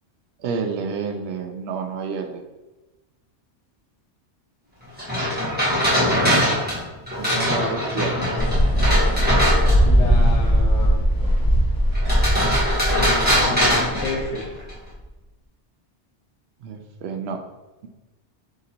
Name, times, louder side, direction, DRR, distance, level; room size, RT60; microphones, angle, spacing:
voice 1, 0.4-2.4 7.2-8.5 16.6-17.4, right 5 dB, 70° right, 5 dB, 0.8 m, -29 dB
sound 1, 5.0-10.0 11.9-14.7, equal, 10° right, 1.4 m, -22 dB
sound 2, 8.4-15.0, equal, 35° left, 0.3 m, -19 dB
voice 2, 9.8-11.0 12.9-14.6, left 2 dB, 75° left, -1 dB, 1.3 m, -31 dB
3.8 x 2.9 x 4.3 m, 1.1 s
omnidirectional pair, 1.2 m